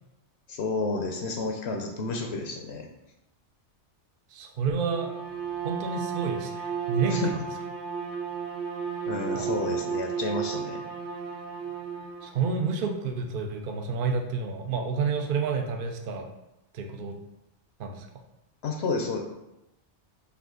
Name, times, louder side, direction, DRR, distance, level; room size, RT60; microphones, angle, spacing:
voice 1, 0.5-2.9 7.1-7.3 9.1-10.8 18.6-19.2, left 3 dB, 70° left, 2 dB, 0.8 m, -30 dB
voice 2, 4.3-5.1 5.6-7.2 9.3-9.7 12.2-16.3 16.7-17.2 17.8-18.1, right 5 dB, 55° right, 4 dB, 0.7 m, -29 dB
Bowed string instrument, 4.8-12.4, right 7 dB, 90° right, 1.1 m, -33 dB
5.7 x 2.4 x 3.7 m, 0.93 s
omnidirectional pair, 1.2 m